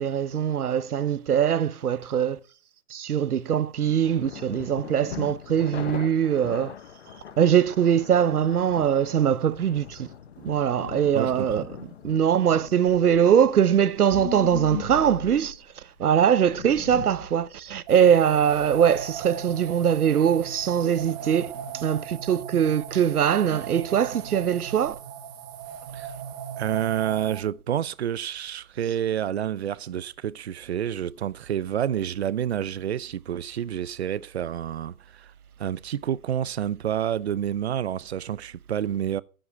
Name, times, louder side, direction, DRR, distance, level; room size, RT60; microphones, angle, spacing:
voice 1, 0.0-2.4 2.9-6.7 7.4-10.1 10.4-11.6 12.0-15.6 16.0-25.0, right 9 dB, 85° right, 1.0 m, -22 dB
sound 1, 4.0-13.6, left 9 dB, 45° left, 0.9 m, -41 dB
voice 2, 11.1-11.7 25.9-26.1 26.6-35.3 35.6-39.2, right 10 dB, 50° right, 0.5 m, -29 dB
sound 2, 14.1-15.6 16.3-17.3 17.7-17.8 18.3-19.1, left 8 dB, 65° left, 1.2 m, -37 dB
sound 3, 17.9-27.4, right 8 dB, 15° right, 0.9 m, -38 dB
14.5 x 7.8 x 4.6 m
hypercardioid pair, 155°, 44 cm